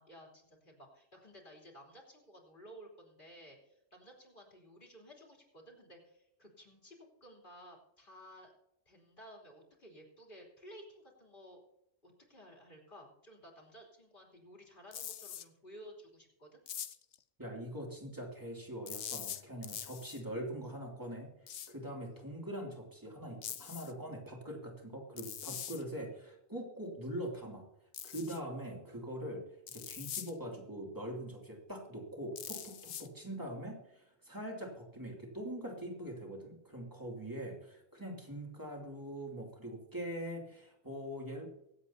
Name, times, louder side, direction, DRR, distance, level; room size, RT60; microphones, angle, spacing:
voice 1, 0.0-8.5 8.8-11.6 12.0-16.6, equal, 50° left, -1 dB, 3.4 m, -55 dB
sound 1, 14.9-15.4 16.7-17.1 18.9-20.2 21.5-21.7 23.4-23.9 25.2-25.8 27.9-28.4 29.7-30.3 32.4-33.1, left 10 dB, 80° left, 1.0 m, -43 dB
voice 2, 17.4-27.7 28.0-41.5, right 1 dB, 15° right, -1 dB, 2.7 m, -43 dB
24.0 x 8.3 x 2.8 m, 0.83 s
omnidirectional pair, 1.2 m